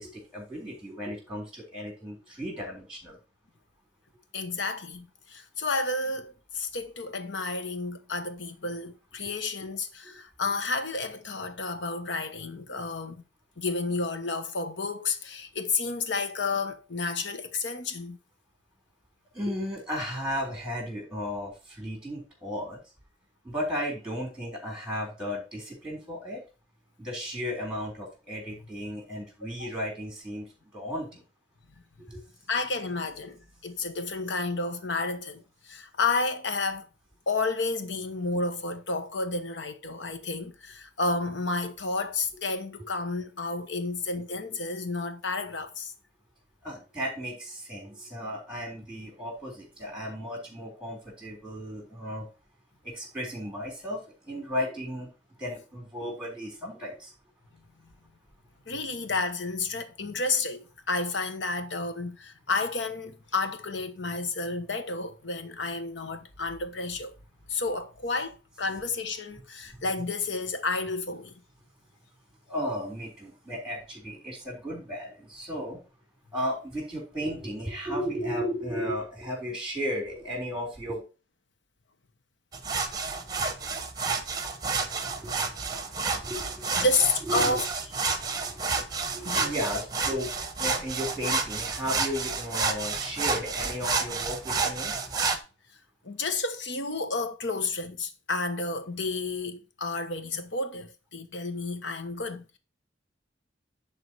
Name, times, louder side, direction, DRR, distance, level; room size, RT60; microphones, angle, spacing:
voice 1, 0.0-3.2 19.3-22.8 23.4-26.4 27.0-30.5 30.7-31.2 32.1-32.2 43.8-43.9 46.6-52.3 52.8-55.1 55.4-57.1 69.7-69.8 72.5-75.8 76.3-81.0 85.0-86.9 87.3-87.6 88.1-90.3 90.6-95.1, equal, 5° right, 3.8 m, -35 dB
voice 2, 4.3-13.2 13.6-18.2 29.6-29.7 32.5-36.9 37.3-45.9 58.7-67.1 67.5-71.3 86.8-87.6 89.2-89.5 96.0-102.6, left 3 dB, 85° left, 1.1 m, -31 dB
sound 1, 82.5-95.4, right 4 dB, 20° right, 1.1 m, -30 dB
11.0 x 3.9 x 4.6 m
head